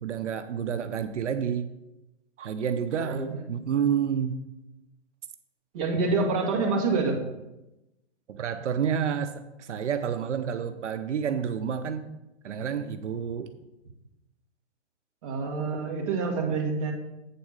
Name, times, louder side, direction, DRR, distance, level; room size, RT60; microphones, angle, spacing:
voice 1, 0.0-1.7 2.4-4.4 8.3-12.1 12.4-13.5, right 8 dB, 85° right, 9 dB, 0.8 m, -29 dB
voice 2, 5.7-7.2 15.2-16.9, right 4 dB, 30° right, -1 dB, 1.5 m, -27 dB
8.4 x 4.2 x 6.4 m, 0.95 s
hypercardioid pair, 165°, 35 cm